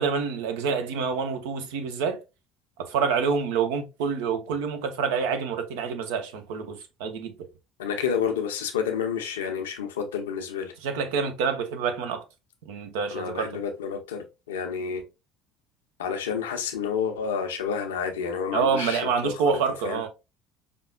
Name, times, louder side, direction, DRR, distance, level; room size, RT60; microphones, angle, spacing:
voice 1, 0.0-2.2 2.8-7.5 10.8-12.2 12.7-13.6 18.5-20.1, right 6 dB, 75° right, 0.6 m, -27 dB
voice 2, 7.8-10.7 13.1-15.0 16.0-19.3 19.8-20.0, left 7 dB, 80° left, 0.6 m, -29 dB
5.1 x 2.4 x 2.2 m
hypercardioid pair, 65°, 0 cm